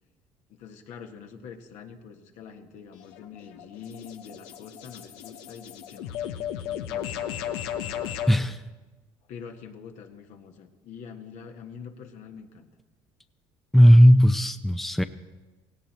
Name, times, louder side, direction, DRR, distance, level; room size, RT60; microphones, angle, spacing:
voice 1, 0.5-8.2 9.3-12.7, left 6 dB, 70° left, 4 dB, 1.7 m, -45 dB
sound 1, 2.9-8.4, left 10 dB, 85° left, 1.0 m, -35 dB
voice 2, 13.7-15.0, equal, ahead, 10 dB, 0.7 m, -16 dB
17.5 x 17.0 x 4.4 m, 1.2 s
supercardioid pair, 75°, 13 cm